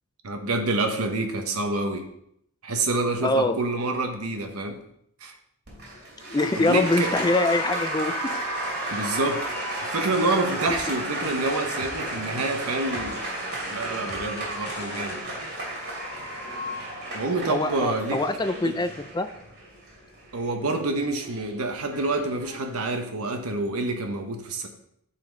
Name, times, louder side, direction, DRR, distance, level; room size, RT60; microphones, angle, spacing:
voice 1, 0.2-2.1 2.6-4.8 5.2-5.3 6.5-7.1 8.9-9.4 9.8-13.2 13.7-15.2 17.1-18.2 18.6-18.8 20.3-24.7, right 2 dB, 85° right, 5 dB, 1.1 m, -27 dB
voice 2, 3.2-3.6 6.3-8.4 10.7-10.8 17.5-18.9 19.1-19.3, left 2 dB, 20° left, 10 dB, 0.3 m, -24 dB
Applause, 5.7-22.8, right 1 dB, 50° right, 2.8 m, -33 dB
sound 1, 10.1-15.2, left 2 dB, 45° left, 0.7 m, -42 dB
10.5 x 4.3 x 3.9 m, 0.73 s
head